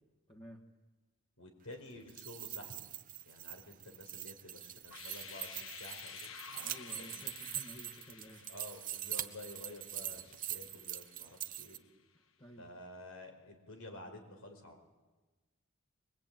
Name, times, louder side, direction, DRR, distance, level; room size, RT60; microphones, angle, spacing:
voice 1, 0.3-0.6 6.5-8.4 12.4-12.7, equal, 25° left, -2 dB, 1.7 m, -53 dB
voice 2, 1.4-2.8 3.2-6.7 6.9-7.1 8.5-11.8 12.6-14.8, left 2 dB, 85° left, 4 dB, 5.0 m, -51 dB
sound 1, 2.0-11.8, right 12 dB, 40° right, 0.9 m, -43 dB
sound 2, 4.8-11.7, left 7 dB, 65° left, 1.3 m, -52 dB
23.0 x 22.0 x 9.1 m, 1.2 s
head